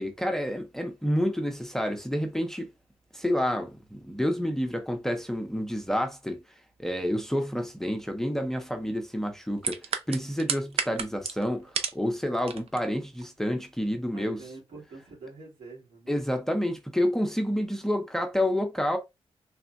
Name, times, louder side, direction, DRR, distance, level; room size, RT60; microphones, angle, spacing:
voice 1, 0.0-2.7 3.1-6.4 6.8-9.8 10.1-14.4 16.1-19.0, equal, 5° left, 0.5 m, -29 dB
sound 1, 9.6-12.1 12.3-12.8 13.2-13.3, right 6 dB, 65° right, 0.5 m, -31 dB
voice 2, 14.1-16.1, right 3 dB, 85° right, 2.0 m, -45 dB
3.4 x 2.1 x 2.4 m
wide cardioid pair, 115°, 11 cm